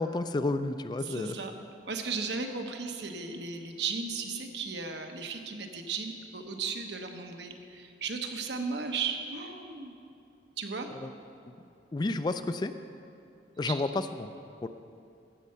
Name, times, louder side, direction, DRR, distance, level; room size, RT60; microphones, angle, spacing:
voice 1, 0.0-1.3 11.0-11.1 11.9-12.7 13.6-14.3 14.6-14.7, left 2 dB, 25° left, 10 dB, 0.3 m, -30 dB
voice 2, 1.0-1.5 1.9-9.9 10.6-10.9 13.7-13.8, right 5 dB, 75° right, 4 dB, 1.0 m, -35 dB
14.5 x 5.5 x 6.7 m, 2.6 s
head